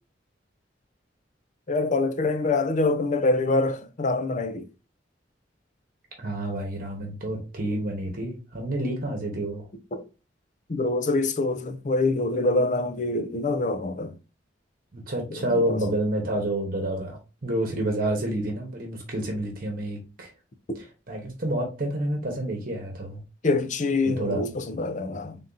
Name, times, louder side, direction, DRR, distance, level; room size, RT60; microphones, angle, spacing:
voice 1, 1.7-4.7 9.9-10.0 10.7-14.1 15.3-15.8 23.4-25.4, left 2 dB, 40° left, 0.5 m, -25 dB
voice 2, 6.2-9.7 14.9-20.3 20.7-23.2 24.0-24.4, right 1 dB, 50° right, 1.1 m, -29 dB
3.7 x 2.7 x 3.8 m
head